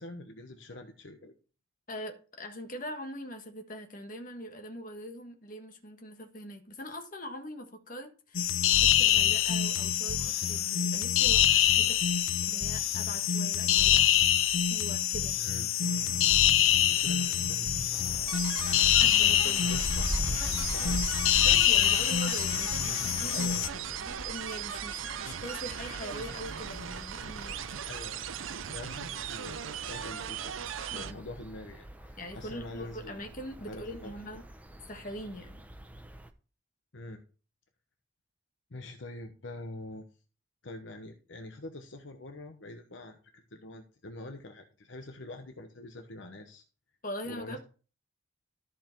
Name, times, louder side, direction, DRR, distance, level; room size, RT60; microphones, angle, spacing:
voice 1, 0.0-1.3 15.4-15.7 16.7-17.7 19.6-20.1 20.6-21.0 23.3-24.1 27.8-33.2 33.7-34.1 36.9-37.2 38.7-40.1 40.6-46.6 47.2-47.6, left 2 dB, 65° left, 1.0 m, -45 dB
voice 2, 1.9-12.0 12.4-14.2 14.7-15.4 19.0-19.7 21.4-23.5 24.0-27.9 30.9-31.2 32.2-34.4 34.9-35.7 47.0-47.6, equal, 40° left, 1.5 m, -42 dB
sound 1, 8.3-23.7, left 10 dB, 90° left, 0.6 m, -25 dB
sound 2, 15.8-31.1, right 8 dB, 75° right, 0.6 m, -39 dB
sound 3, 17.9-36.3, right 1 dB, 10° right, 0.7 m, -43 dB
13.5 x 5.0 x 4.5 m
head